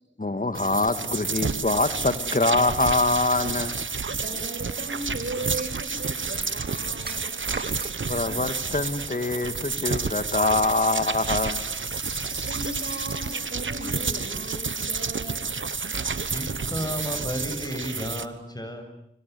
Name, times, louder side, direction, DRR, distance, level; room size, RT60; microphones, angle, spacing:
voice 1, 0.2-3.7 8.1-11.6, left 2 dB, 45° left, 9 dB, 1.9 m, -24 dB
sound 1, 0.5-18.3, right 4 dB, 90° right, 1.2 m, -30 dB
voice 2, 4.2-7.4 12.1-15.4, right 2 dB, 70° right, 5 dB, 7.0 m, -37 dB
sound 2, 5.6-8.0, right 3 dB, 55° right, 2.3 m, -40 dB
sound 3, 10.6-13.4, equal, 5° right, 3.2 m, -46 dB
voice 3, 16.3-18.8, equal, 20° left, 7 dB, 7.3 m, -32 dB
25.0 x 25.0 x 9.6 m, 0.78 s
wide cardioid pair, 40°, 19 cm